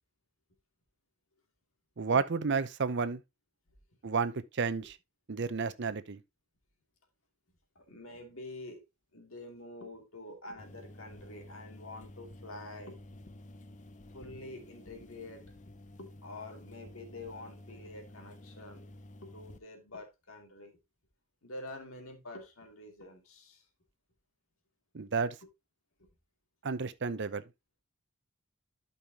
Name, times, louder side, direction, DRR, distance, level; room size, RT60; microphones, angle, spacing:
voice 1, 2.0-3.2 4.0-5.0 5.3-6.2 24.9-25.4 26.6-27.4, right 5 dB, 55° right, 0.7 m, -31 dB
voice 2, 7.7-8.8 9.1-13.0 14.1-15.5 16.0-18.9 19.2-20.8 21.4-23.7 26.0-26.1, left 2 dB, 70° left, 2.7 m, -47 dB
sound 1, 10.6-19.6, left 1 dB, 35° left, 0.7 m, -51 dB
12.0 x 5.6 x 2.9 m
head